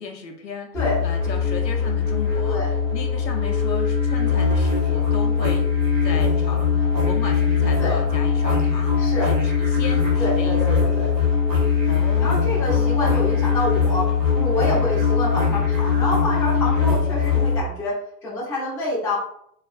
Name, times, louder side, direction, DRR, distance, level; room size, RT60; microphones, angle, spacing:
voice 1, 0.0-0.8 1.0-5.7 6.0-10.9 11.9-12.9, left 5 dB, 90° left, 3 dB, 0.6 m, -35 dB
sound 1, 0.7-17.6, left 6 dB, 75° right, 1.2 m, -21 dB
voice 2, 9.0-9.3 10.2-11.1 12.2-18.0 18.2-19.2, left 1 dB, 5° left, -5 dB, 0.3 m, -27 dB
3.1 x 2.3 x 2.3 m, 0.70 s
figure-of-eight pair, 90°, 49 cm